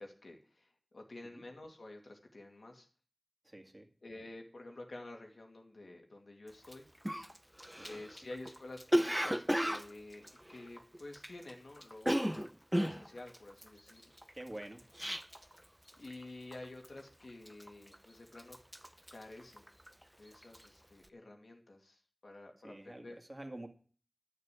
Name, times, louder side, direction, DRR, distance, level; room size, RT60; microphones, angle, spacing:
voice 1, 0.0-2.9 4.0-6.9 7.8-12.5 12.8-14.1 16.0-18.6 19.1-19.7 20.2-23.2, left 2 dB, 80° left, 2 dB, 2.4 m, -50 dB
voice 2, 3.4-3.9 7.8-8.0 14.3-14.8 22.6-23.7, right 1 dB, 30° right, 4 dB, 2.2 m, -47 dB
Cough, 6.6-6.7 7.0-11.5 11.8-15.6 15.9-16.2 16.5-17.0 17.5-18.0 18.3-20.0 20.3-20.7, equal, 5° right, 0.7 m, -34 dB
12.0 x 6.8 x 8.4 m, 0.43 s
wide cardioid pair, 45°, 0 cm